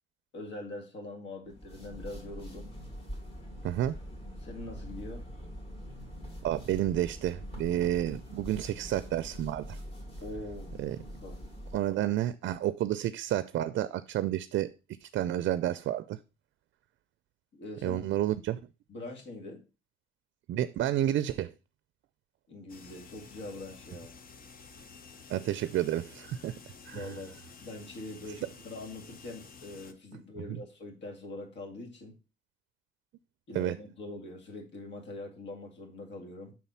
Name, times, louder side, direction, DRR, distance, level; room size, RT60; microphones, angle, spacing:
voice 1, 0.3-2.7 4.4-5.3 10.2-10.8 11.2-11.5 17.5-18.1 18.9-19.6 22.5-24.1 26.9-32.2 33.5-36.5, left 2 dB, 65° left, 2.2 m, -43 dB
sound 1, 1.5-12.0, equal, 30° left, 2.5 m, -44 dB
voice 2, 3.6-4.0 6.4-9.8 10.8-11.0 11.7-14.7 15.0-16.2 17.8-18.6 20.5-21.5 25.3-26.6 26.9-27.1 33.5-33.8, right 12 dB, 65° right, 0.4 m, -30 dB
sound 2, 22.7-29.9, left 5 dB, 45° left, 0.9 m, -51 dB
6.0 x 4.1 x 5.6 m
cardioid pair, 90°, 20 cm